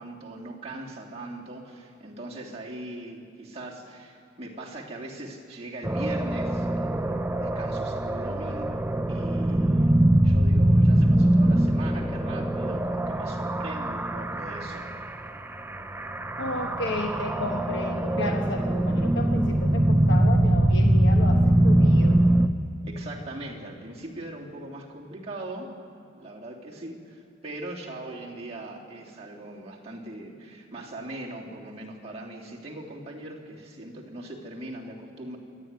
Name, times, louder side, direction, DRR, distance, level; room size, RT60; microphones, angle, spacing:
voice 1, 0.0-14.9 22.8-25.7 26.1-35.4, right 1 dB, 30° right, -3 dB, 3.0 m, -40 dB
sound 1, 5.8-15.3 15.6-22.5, right 1 dB, 10° right, 0.6 m, -22 dB
voice 2, 16.4-22.2, left 2 dB, 60° left, 2 dB, 1.2 m, -33 dB
27.0 x 11.5 x 9.6 m, 2.6 s
head